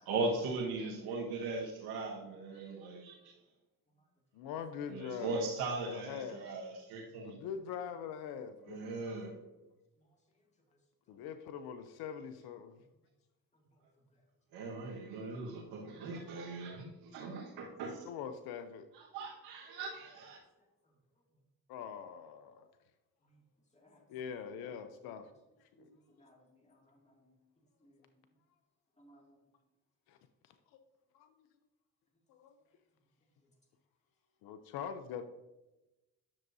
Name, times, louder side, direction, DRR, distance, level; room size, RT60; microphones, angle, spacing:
voice 1, 0.1-3.3 4.9-7.3 8.7-9.3 14.5-18.0 19.0-20.4, right 3 dB, 85° right, -2 dB, 1.4 m, -39 dB
voice 2, 4.3-5.4 5.8-6.5 7.2-8.9 11.1-12.8 18.1-18.9 21.7-22.7 24.1-25.3 25.6-25.9 30.1-30.2 30.7-30.8 31.1-31.5 32.3-32.5 34.4-35.2, left 7 dB, 85° left, 9 dB, 0.6 m, -43 dB
voice 3, 25.7-27.0 27.2-27.3 27.8-28.1 29.0-29.4, equal, 20° left, 0 dB, 2.2 m, -64 dB
10.5 x 6.3 x 2.7 m, 1.0 s
supercardioid pair, 60°, 36 cm